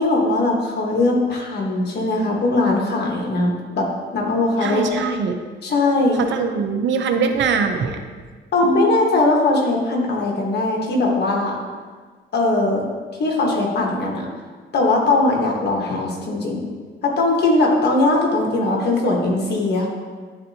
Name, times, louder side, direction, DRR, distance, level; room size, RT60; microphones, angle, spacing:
voice 1, 0.0-3.9 4.1-5.0 5.6-6.2 8.5-11.6 12.3-12.8 13.2-14.3 14.7-16.6 17.0-19.9, left 2 dB, 55° left, -1 dB, 1.5 m, -20 dB
voice 2, 4.6-5.4 6.1-8.0, right 5 dB, 70° right, 6 dB, 0.7 m, -22 dB
10.5 x 4.1 x 2.8 m, 1.5 s
cardioid pair, 90°, 20 cm